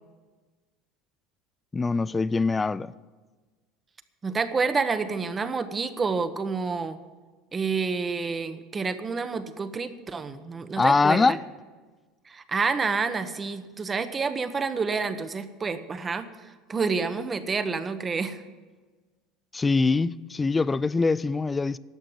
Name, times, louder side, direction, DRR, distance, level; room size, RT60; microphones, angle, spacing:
voice 1, 1.7-2.9 10.8-11.4 19.5-21.8, left 4 dB, 15° left, 0.3 m, -23 dB
voice 2, 4.2-7.0 7.5-11.4 12.3-18.4, right 4 dB, 20° right, 0.9 m, -29 dB
12.0 x 7.6 x 10.0 m
supercardioid pair, 125°, 0 cm